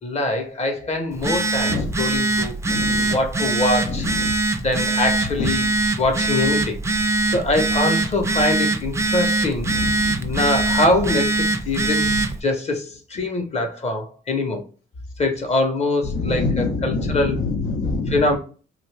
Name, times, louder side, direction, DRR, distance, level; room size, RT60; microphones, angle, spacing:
voice 1, 0.0-2.8 3.1-4.1 4.6-5.7 6.0-9.7 10.2-12.1 12.4-14.6 15.2-17.4 18.1-18.4, left 2 dB, 35° left, 1.0 m, -23 dB
Telephone, 1.1-12.4, right 3 dB, 15° right, 0.4 m, -22 dB
voice 2, 2.6-3.2 3.8-4.3 5.4-5.5 9.6-10.5 12.0-12.2 16.0-18.4, left 3 dB, 80° left, 1.1 m, -26 dB
2.9 x 2.5 x 3.2 m
cardioid pair, 90°, 20 cm